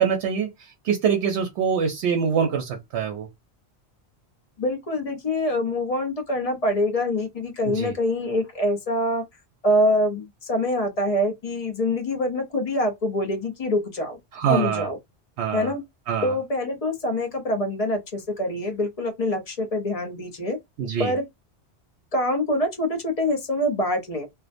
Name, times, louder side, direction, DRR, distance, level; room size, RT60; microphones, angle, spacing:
voice 1, 0.0-3.3 7.7-7.9 14.3-14.9 15.4-15.7 16.1-16.3 20.8-21.1, right 7 dB, 80° right, 0.8 m, -24 dB
voice 2, 4.6-9.2 9.6-14.2 14.5-15.0 15.5-15.8 16.2-20.6 21.0-21.2 22.1-24.3, left 1 dB, 45° left, 0.6 m, -25 dB
2.4 x 2.1 x 2.5 m
omnidirectional pair, 1.1 m